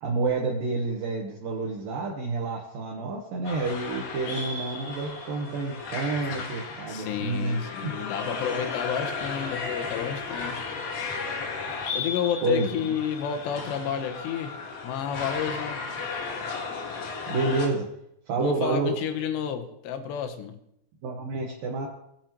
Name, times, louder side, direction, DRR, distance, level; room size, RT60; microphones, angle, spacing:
voice 1, 0.0-7.9 12.4-12.9 17.3-17.9 18.3-18.9 21.0-21.9, right 3 dB, 70° right, -2 dB, 2.5 m, -29 dB
sound 1, 3.5-17.7, left 4 dB, 70° left, 3.4 m, -34 dB
voice 2, 6.9-10.6 11.9-14.5 14.8-15.8 18.4-20.6, left 8 dB, 90° left, 6 dB, 3.2 m, -31 dB
18.5 x 7.3 x 3.0 m, 0.77 s
omnidirectional pair, 4.8 m